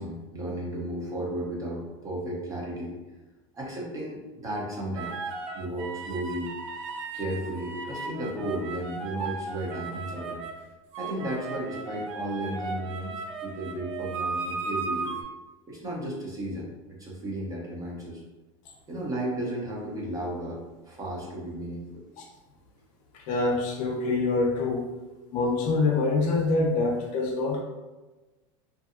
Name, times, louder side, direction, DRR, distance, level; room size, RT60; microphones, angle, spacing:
voice 1, 0.0-3.0 3.5-6.6 7.1-10.4 11.0-13.1 13.4-15.2 15.7-18.2 18.9-22.0, right 1 dB, 20° right, -4 dB, 0.7 m, -34 dB
sound 1, 5.0-10.6 10.9-15.2, right 4 dB, 80° right, 0.5 m, -36 dB
voice 2, 23.1-24.8 25.3-27.6, left 3 dB, 50° left, -1 dB, 0.7 m, -25 dB
2.6 x 2.5 x 2.5 m, 1.2 s
supercardioid pair, 130°, 17 cm